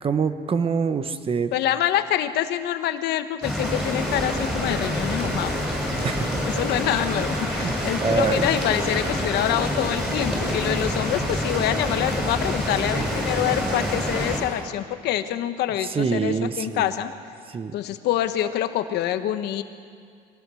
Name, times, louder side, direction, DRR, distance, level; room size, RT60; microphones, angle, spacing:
voice 1, 0.0-1.5 6.0-6.4 7.5-7.7 8.0-8.5 13.0-13.1 15.9-16.9 17.5-17.7, right 5 dB, 35° right, 11 dB, 1.1 m, -25 dB
voice 2, 1.5-5.6 6.4-17.1 17.7-19.6, left 11 dB, 80° left, 9 dB, 1.2 m, -26 dB
sound 1, 3.4-14.4, equal, 5° right, 6.9 m, -26 dB
23.5 x 19.0 x 6.3 m, 2.1 s
cardioid pair, 110°, 17 cm